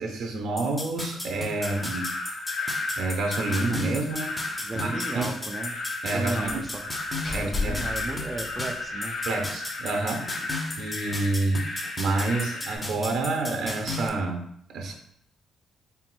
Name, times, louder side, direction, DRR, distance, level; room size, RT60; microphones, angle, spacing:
voice 1, 0.0-2.0 3.0-4.4 4.7-5.3 6.0-6.5 7.3-7.8 9.2-10.3 10.8-11.7 12.0-14.9, right 3 dB, 75° right, 4 dB, 0.7 m, -28 dB
sound 1, 0.6-14.1, left 2 dB, 20° left, 0.6 m, -36 dB
sound 2, 1.6-12.8, left 3 dB, 85° left, 1.5 m, -34 dB
voice 2, 1.6-1.9 4.6-5.8 6.1-6.8 7.4-9.5 10.4-10.5, right 2 dB, 20° right, 3 dB, 0.4 m, -35 dB
Slam, 3.5-3.8 4.1-4.2 4.5-4.6 6.4-9.0, left 3 dB, 40° left, 1.4 m, -35 dB
4.5 x 3.5 x 2.2 m, 0.69 s
cardioid pair, 90°, 0 cm